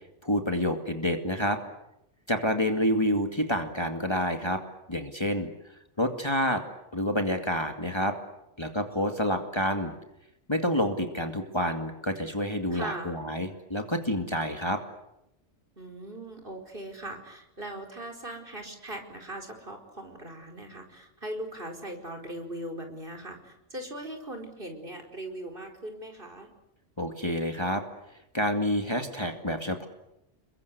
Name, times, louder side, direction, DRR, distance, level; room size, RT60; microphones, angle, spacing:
voice 1, 0.2-1.6 2.3-4.6 4.9-5.5 6.0-6.6 6.9-8.2 8.6-9.9 10.5-14.8 27.0-27.8 28.3-29.9, equal, 20° left, 5 dB, 2.4 m, -28 dB
voice 2, 12.7-13.2 15.8-26.5, right 1 dB, 45° right, 4 dB, 5.0 m, -40 dB
30.0 x 22.5 x 8.3 m, 0.84 s
omnidirectional pair, 1.2 m